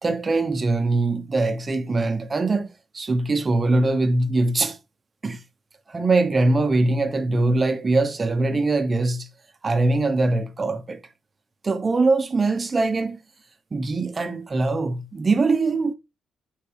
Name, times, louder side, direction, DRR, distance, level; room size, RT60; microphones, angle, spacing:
voice 1, 0.0-4.8 5.2-5.4 5.9-9.3 9.6-11.0 11.6-13.2 13.7-15.9, right 3 dB, 30° right, 1.2 m, -22 dB
8.4 x 5.6 x 3.5 m
cardioid pair, 90°, 0 cm